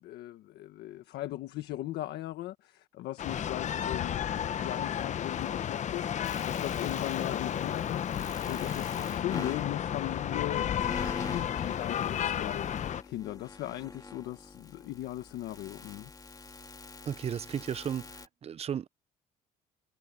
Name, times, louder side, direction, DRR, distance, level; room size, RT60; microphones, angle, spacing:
voice 1, 0.0-16.1, left 15 dB, 80° left, 1.5 m, -39 dB
sound 1, 3.2-13.0, left 9 dB, 45° left, 0.8 m, -32 dB
sound 2, 6.2-18.3, left 4 dB, 25° left, 3.3 m, -45 dB
voice 2, 17.1-18.9, right 8 dB, 35° right, 0.6 m, -34 dB
cardioid pair, 110°, 17 cm